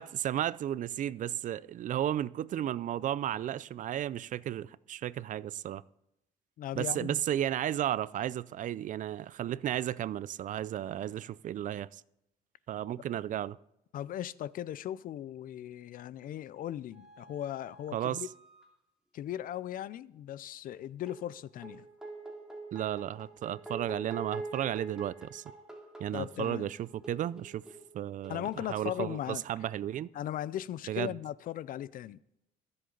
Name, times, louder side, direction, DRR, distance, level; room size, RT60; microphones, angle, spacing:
voice 1, 0.0-5.8 6.7-12.0 12.7-13.6 17.9-18.3 22.7-25.5 26.0-27.6 27.9-30.1 30.9-31.2, right 11 dB, 50° right, 0.4 m, -34 dB
voice 2, 6.6-7.2 13.9-18.3 19.1-21.8 26.1-26.7 28.3-29.4 30.1-32.2, left 12 dB, 55° left, 0.5 m, -38 dB
sound 1, 16.9-18.7 21.1-28.6, right 2 dB, 5° right, 2.9 m, -46 dB
23.5 x 7.8 x 3.9 m
cardioid pair, 110°, 17 cm